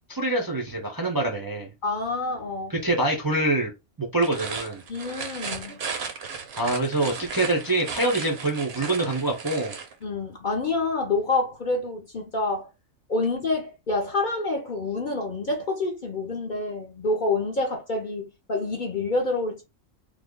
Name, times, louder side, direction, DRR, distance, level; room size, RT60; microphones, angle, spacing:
voice 1, 0.1-1.7 2.7-3.7 4.0-4.8 6.6-9.8, right 2 dB, 25° right, 0.5 m, -25 dB
voice 2, 1.8-2.7 4.9-5.8 10.0-12.7 13.1-19.6, left 3 dB, 45° left, 0.7 m, -27 dB
sound 1, 4.1-9.9, right 5 dB, 60° right, 0.9 m, -35 dB
3.3 x 2.1 x 3.6 m
omnidirectional pair, 1.4 m